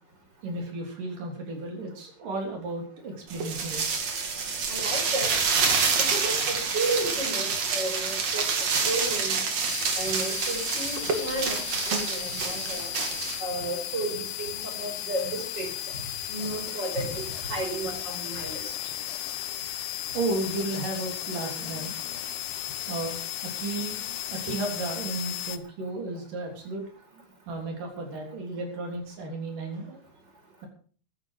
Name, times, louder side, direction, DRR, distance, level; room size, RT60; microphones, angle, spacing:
voice 1, 0.4-3.8 20.1-22.2 22.9-26.8 27.1-30.0, right 2 dB, 85° right, 1 dB, 5.1 m, -34 dB
sound 1, 3.3-13.4, right 5 dB, 55° right, 3.3 m, -27 dB
voice 2, 4.7-5.3 6.1-9.4 10.0-12.9 13.4-16.0 16.3-18.7, right 2 dB, 30° right, 3 dB, 5.6 m, -33 dB
sound 2, 9.7-25.6, left 12 dB, 70° left, 2.3 m, -35 dB
15.0 x 12.5 x 4.9 m, 0.43 s
omnidirectional pair, 3.7 m